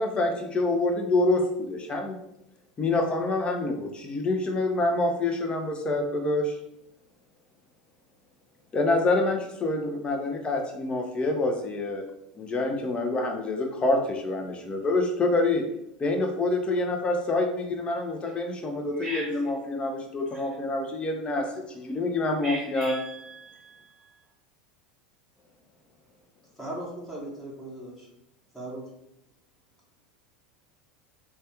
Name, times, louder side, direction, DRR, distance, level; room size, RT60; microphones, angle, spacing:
voice 1, 0.0-2.2 2.8-6.6 8.7-12.1 12.4-15.7 16.0-23.0, left 2 dB, 25° left, 4 dB, 0.6 m, -27 dB
voice 2, 19.0-19.5 22.4-24.2, right 2 dB, 15° right, -4 dB, 0.6 m, -39 dB
voice 3, 26.6-28.0 28.5-28.8, right 1 dB, 5° left, -5 dB, 1.0 m, -37 dB
3.2 x 2.2 x 2.8 m, 0.80 s
hypercardioid pair, 85°, 4 cm